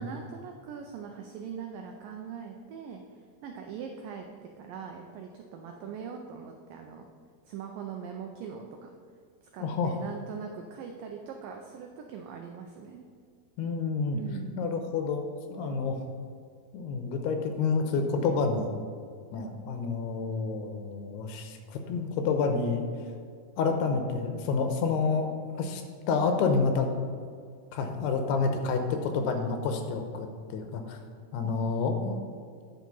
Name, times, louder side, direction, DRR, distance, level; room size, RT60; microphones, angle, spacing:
voice 1, 0.0-4.3 4.6-7.1 7.5-8.9 9.5-13.1 14.1-14.6 31.4-31.5, right 7 dB, 90° right, 3 dB, 1.9 m, -41 dB
voice 2, 9.6-10.0 13.6-14.2 14.6-15.2 15.5-16.0 16.7-18.7 19.3-22.9 23.6-25.8 26.1-26.9 27.7-31.0 31.3-32.2, left 4 dB, 85° left, 5 dB, 2.8 m, -29 dB
9.3 x 6.4 x 5.4 m, 2.2 s
omnidirectional pair, 4.8 m